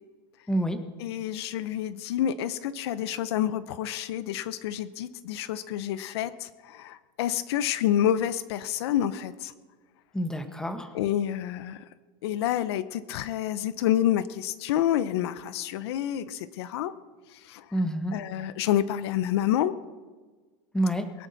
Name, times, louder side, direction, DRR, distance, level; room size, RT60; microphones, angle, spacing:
voice 1, 0.5-0.8 10.1-10.9 17.7-18.2 20.7-21.1, right 1 dB, 5° left, 7 dB, 1.2 m, -28 dB
voice 2, 1.0-9.5 10.9-11.8 12.2-16.9 17.4-17.6 18.1-19.7, left 11 dB, 75° left, 15 dB, 0.8 m, -28 dB
23.0 x 11.0 x 4.1 m, 1.4 s
supercardioid pair, 140°, 14 cm